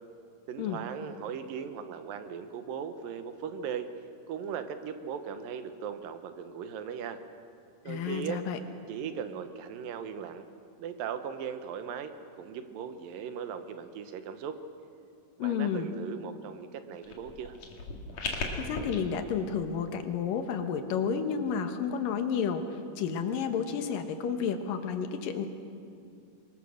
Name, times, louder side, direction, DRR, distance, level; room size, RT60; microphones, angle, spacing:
voice 1, 0.5-3.9 4.3-7.2 7.8-8.4 8.9-10.5 10.8-14.6 15.4-17.6, right 7 dB, 80° right, 9 dB, 2.8 m, -38 dB
voice 2, 7.9-8.6 15.4-15.9 18.5-22.6 23.0-25.5, left 7 dB, 75° left, 7 dB, 2.9 m, -31 dB
sound 1, 17.0-19.0, left 4 dB, 55° left, 3.2 m, -36 dB
24.0 x 21.0 x 6.4 m, 2.5 s
omnidirectional pair, 4.0 m